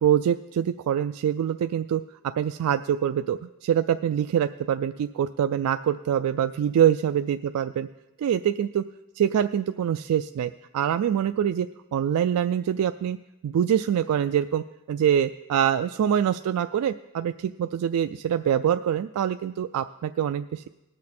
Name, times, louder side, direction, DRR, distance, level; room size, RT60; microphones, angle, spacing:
voice 1, 0.0-7.9 8.2-8.8 9.1-13.2 13.4-20.7, right 9 dB, 80° right, 10 dB, 0.3 m, -25 dB
19.0 x 6.5 x 4.2 m, 1.0 s
head